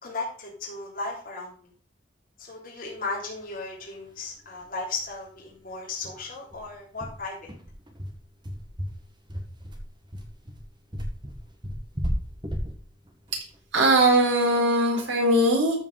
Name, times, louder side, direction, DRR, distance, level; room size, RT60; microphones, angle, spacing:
voice 1, 0.0-1.7 2.4-7.5, left 3 dB, 45° left, -4 dB, 3.3 m, -35 dB
sound 1, 4.1-4.2 4.5-4.6 4.9-5.1 5.5-5.6 6.0-14.5, equal, 25° right, 1.6 m, -34 dB
voice 2, 13.7-15.8, right 1 dB, 85° right, 0 dB, 3.9 m, -20 dB
13.5 x 5.2 x 4.8 m, 0.42 s
head